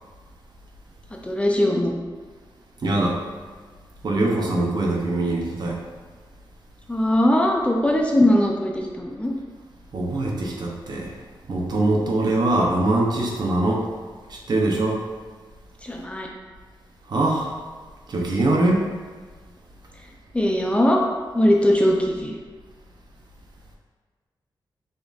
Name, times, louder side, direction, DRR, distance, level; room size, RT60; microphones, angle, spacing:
voice 1, 1.2-1.9 6.9-9.3 15.8-16.3 20.3-21.1 21.3-22.4, left 1 dB, 15° left, 0 dB, 0.4 m, -20 dB
voice 2, 2.8-3.2 4.0-5.8 9.9-11.2 11.5-13.9 14.3-15.0 17.1-17.5 18.1-18.8, right 2 dB, 55° right, -1 dB, 0.6 m, -22 dB
5.0 x 2.5 x 2.4 m, 1.5 s
wide cardioid pair, 130°, 9 cm